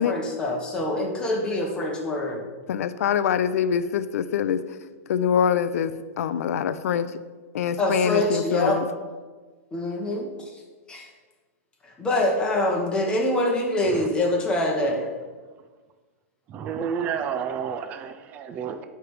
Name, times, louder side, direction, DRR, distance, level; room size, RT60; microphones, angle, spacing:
voice 1, 0.0-2.5 7.8-8.9 9.7-10.6 10.9-11.1 11.8-15.1, left 1 dB, 10° left, 0 dB, 1.0 m, -25 dB
voice 2, 2.7-4.6 5.1-7.1 7.5-8.8, left 8 dB, 70° left, 13 dB, 0.4 m, -24 dB
voice 3, 16.5-18.8, right 7 dB, 20° right, 8 dB, 0.3 m, -30 dB
9.8 x 3.4 x 4.7 m, 1.4 s
supercardioid pair, 160°, 8 cm